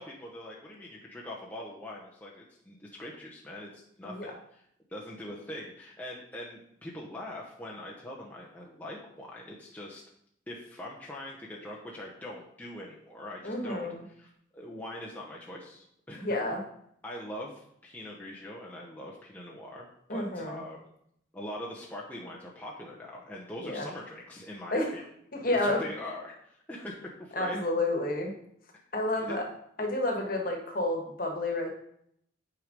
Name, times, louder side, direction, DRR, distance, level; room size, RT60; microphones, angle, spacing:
voice 1, 0.0-4.6 4.9-10.0 10.5-13.9 14.2-16.3 17.0-20.8 21.3-25.0 25.6-27.6 29.2-29.4, left 1 dB, 10° left, -4 dB, 0.8 m, -42 dB
voice 2, 13.4-14.0 16.2-16.6 20.1-20.6 23.6-23.9 24.7-24.9 25.3-25.8 27.3-28.3 28.9-29.5 29.8-31.7, left 2 dB, 45° left, 1 dB, 1.4 m, -30 dB
6.3 x 4.9 x 5.2 m, 0.71 s
head